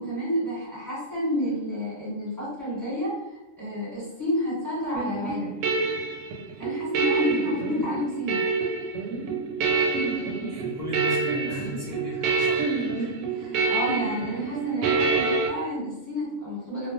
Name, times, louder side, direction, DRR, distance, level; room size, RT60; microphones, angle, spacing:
voice 1, 0.0-3.2 3.6-5.6 6.6-8.4 13.3-16.9, left 1 dB, 15° right, -9 dB, 1.1 m, -30 dB
sound 1, 5.0-15.5, right 4 dB, 75° right, 0.9 m, -27 dB
voice 2, 10.5-13.5, left 1 dB, 45° left, -7 dB, 0.5 m, -37 dB
2.3 x 2.2 x 2.9 m, 0.94 s
omnidirectional pair, 1.3 m